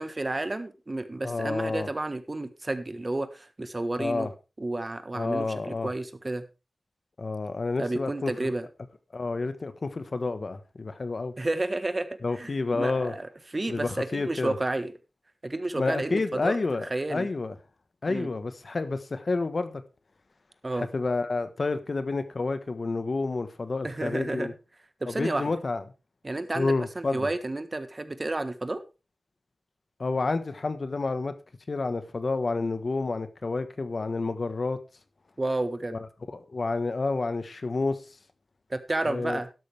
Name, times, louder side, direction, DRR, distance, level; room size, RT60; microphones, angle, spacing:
voice 1, 0.0-4.3 4.6-6.4 7.8-8.7 11.4-12.1 12.3-14.9 15.4-16.6 16.9-17.3 18.1-18.3 20.6-20.9 23.8-24.5 25.0-25.5 26.2-28.8 35.4-36.0 38.7-39.5, right 2 dB, 30° right, 1.4 m, -31 dB
voice 2, 1.2-1.9 4.0-4.3 5.1-5.9 7.2-8.5 9.1-11.3 12.2-13.1 13.7-14.5 15.8-17.5 18.0-19.8 20.7-24.5 25.1-25.8 26.5-27.3 30.0-31.3 31.7-34.8 35.9-38.0 39.0-39.4, left 3 dB, 55° left, 1.3 m, -29 dB
12.5 x 11.5 x 3.4 m
wide cardioid pair, 85°, 0 cm